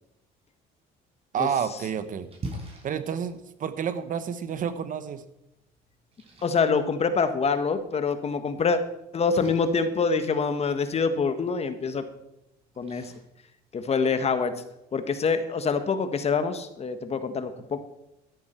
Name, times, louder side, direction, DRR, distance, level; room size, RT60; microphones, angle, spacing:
voice 1, 1.3-2.3 2.8-5.2, right 7 dB, 50° right, 12 dB, 1.1 m, -29 dB
Splash splatter, 1.6-14.3, right 1 dB, 35° right, 4.6 m, -47 dB
voice 2, 6.4-8.8 9.1-12.0 12.8-13.1 13.7-14.5 14.9-17.8, left 5 dB, 40° left, 10 dB, 1.4 m, -25 dB
13.0 x 10.5 x 4.5 m, 0.87 s
cardioid pair, 110°, 17 cm